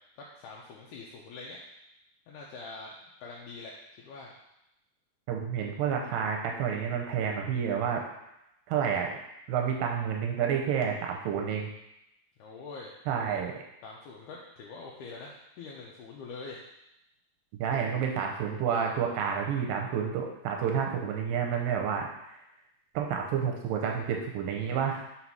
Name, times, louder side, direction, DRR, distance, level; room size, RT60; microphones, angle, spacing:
voice 1, 0.2-1.6 2.3-4.3 12.4-13.0 13.8-16.6, left 3 dB, 80° left, -2 dB, 1.9 m, -44 dB
voice 2, 5.3-8.0 8.7-9.1 9.5-11.7 13.1-13.5 17.6-22.1 22.9-25.0, right 7 dB, 85° right, 1 dB, 2.3 m, -29 dB
5.6 x 4.1 x 4.6 m, 0.85 s
omnidirectional pair, 4.1 m